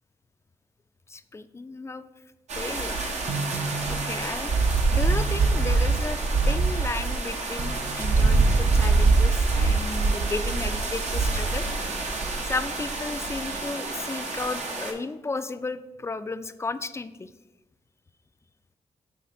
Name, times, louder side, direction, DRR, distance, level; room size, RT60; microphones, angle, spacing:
voice 1, 1.1-2.0 2.6-3.0 3.9-4.5 4.9-6.2 6.4-11.7 12.4-17.3, left 3 dB, 20° left, 11 dB, 0.4 m, -34 dB
sound 1, 2.5-14.9, right 3 dB, 65° right, 1.0 m, -24 dB
sound 2, 3.3-4.3 5.1-5.9 6.3-7.0 7.6-8.2, right 3 dB, 45° right, 0.6 m, -35 dB
5.8 x 3.1 x 5.3 m, 1.0 s
supercardioid pair, 50°, 12 cm